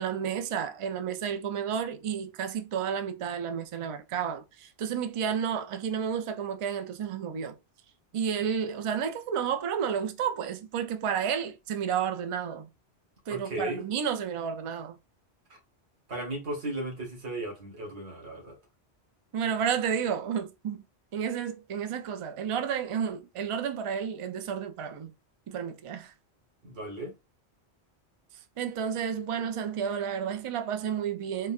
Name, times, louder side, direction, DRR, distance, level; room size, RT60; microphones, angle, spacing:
voice 1, 0.0-7.6 8.1-12.7 13.3-15.0 19.3-20.8 21.1-25.1 25.5-26.1 28.6-31.5, right 7 dB, 55° right, 0.3 m, -31 dB
voice 2, 13.3-13.8 15.5-15.6 16.1-18.6 26.6-27.1, right 1 dB, 85° right, 1.6 m, -36 dB
3.8 x 2.2 x 2.4 m
omnidirectional pair, 1.1 m